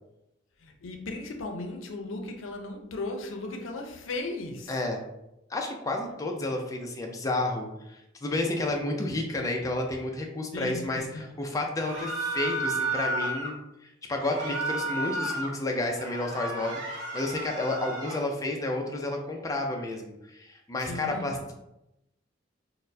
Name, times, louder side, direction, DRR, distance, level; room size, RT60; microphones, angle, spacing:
voice 1, 0.6-4.9 10.5-11.3 20.8-21.5, left 2 dB, 85° left, 3 dB, 0.5 m, -37 dB
voice 2, 4.7-5.0 5.5-21.4, left 2 dB, 15° left, 1 dB, 0.4 m, -31 dB
sound 1, 11.8-13.5 14.2-15.5 15.9-18.2, right 2 dB, 80° right, 0.9 m, -32 dB
4.1 x 2.0 x 2.6 m, 0.88 s
head